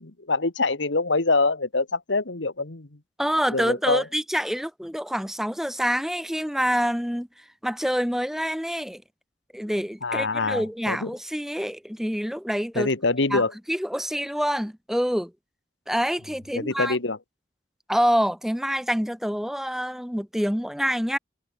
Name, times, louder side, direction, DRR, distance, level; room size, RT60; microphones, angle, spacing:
voice 1, 0.0-2.9 3.5-4.0 10.0-11.1 12.8-13.5 16.5-17.2, left 3 dB, 85° left, 1.8 m, -25 dB
voice 2, 3.2-9.0 9.5-12.9 13.3-15.3 15.9-17.0 17.9-21.2, equal, ahead, 2.2 m, -26 dB
head